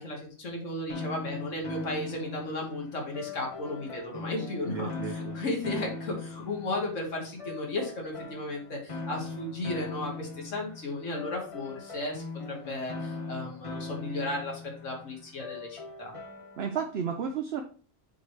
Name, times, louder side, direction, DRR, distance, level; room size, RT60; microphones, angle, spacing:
voice 1, 0.0-16.1, left 2 dB, 85° left, 0 dB, 2.0 m, -35 dB
sound 1, 0.9-16.8, left 3 dB, 30° left, 0.8 m, -40 dB
voice 2, 4.6-5.4 16.6-17.6, right 7 dB, 60° right, 4 dB, 0.9 m, -33 dB
7.0 x 3.3 x 4.8 m, 0.40 s
omnidirectional pair, 1.3 m